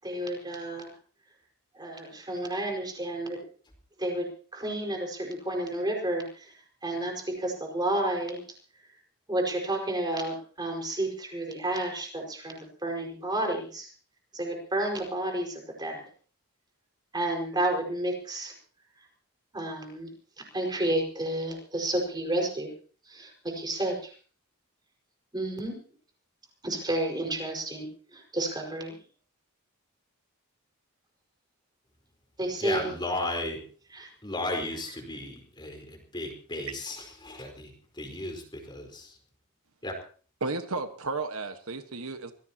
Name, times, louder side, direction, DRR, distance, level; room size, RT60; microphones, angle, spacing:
voice 1, 0.0-0.9 1.7-3.5 4.0-4.3 4.5-6.5 6.8-8.4 9.3-13.9 14.3-16.0 17.1-18.5 19.5-20.1 20.4-22.7 23.0-24.1 25.3-25.8 26.6-29.0 32.4-33.0 33.9-34.1, right 1 dB, 20° right, 1 dB, 5.2 m, -31 dB
voice 2, 32.6-33.6 34.2-39.2 39.8-40.0, left 2 dB, 20° left, 3 dB, 4.4 m, -35 dB
voice 3, 40.4-42.3, right 3 dB, 70° right, 7 dB, 1.5 m, -33 dB
25.0 x 17.0 x 3.0 m, 0.42 s
head